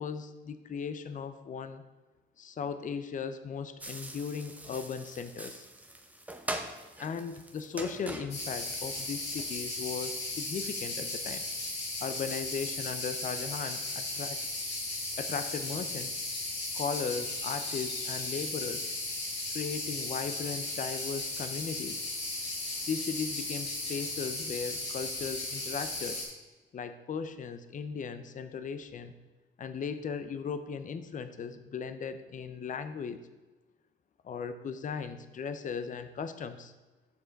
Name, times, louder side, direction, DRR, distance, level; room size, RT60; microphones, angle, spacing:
voice 1, 0.0-1.8 2.4-5.7 7.0-11.4 12.0-14.4 15.2-16.1 16.7-18.9 19.5-22.1 22.9-26.2 26.7-29.1 29.6-33.2 34.2-36.7, left 6 dB, 40° left, 10 dB, 0.6 m, -37 dB
sound 1, 3.8-9.5, right 1 dB, 5° right, 0.8 m, -42 dB
sound 2, 8.3-26.2, left 2 dB, 60° left, 2.9 m, -36 dB
7.2 x 6.3 x 4.5 m, 1.2 s
cardioid pair, 90°, 20 cm